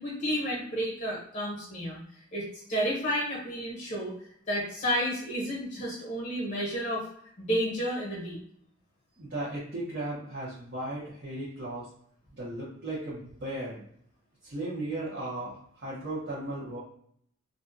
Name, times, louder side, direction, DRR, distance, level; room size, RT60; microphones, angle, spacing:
voice 1, 0.0-2.0 2.3-2.4 2.7-4.1 4.5-7.0 7.4-8.4, equal, 40° left, -4 dB, 0.9 m, -31 dB
voice 2, 9.2-11.9 12.3-13.8 14.4-16.8, right 1 dB, 55° right, -8 dB, 0.8 m, -36 dB
2.5 x 2.2 x 2.5 m, 0.65 s
head